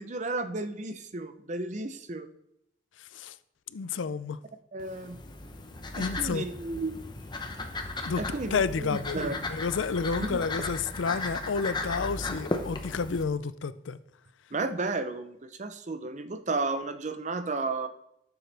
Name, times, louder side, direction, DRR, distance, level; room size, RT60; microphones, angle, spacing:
voice 1, 0.0-2.3 4.7-5.2 5.9-7.0 8.2-9.3 10.3-10.4 14.5-17.9, right 3 dB, 40° right, 0.7 m, -33 dB
voice 2, 3.7-4.4 6.0-6.5 8.0-8.2 8.5-14.0, left 5 dB, 85° left, 0.5 m, -30 dB
sound 1, 4.8-13.2, left 2 dB, 25° left, 0.8 m, -36 dB
13.0 x 7.0 x 3.4 m
head